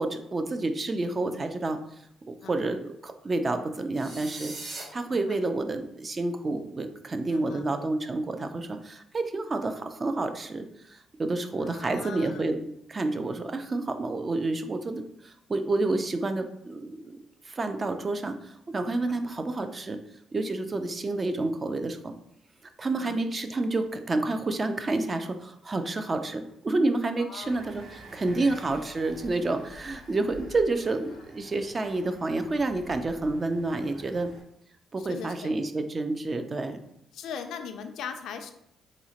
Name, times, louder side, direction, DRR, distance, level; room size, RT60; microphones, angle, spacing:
voice 1, 0.0-1.8 2.3-4.5 4.9-12.6 12.9-17.2 17.5-20.0 20.3-22.1 22.8-27.8 28.1-34.3 34.9-36.8, right 2 dB, 30° right, 7 dB, 0.3 m, -29 dB
voice 2, 2.4-2.7 5.1-5.4 7.3-7.7 11.6-12.4 22.8-23.2 27.2-27.6 31.1-31.2 35.0-35.5 37.1-38.5, left 7 dB, 75° left, 7 dB, 0.3 m, -40 dB
sound 1, 3.9-4.8, right 2 dB, 55° right, 0.8 m, -39 dB
sound 2, 27.4-34.4, equal, 85° right, 1.0 m, -48 dB
3.7 x 2.1 x 2.8 m, 0.74 s
cardioid pair, 90°, 0 cm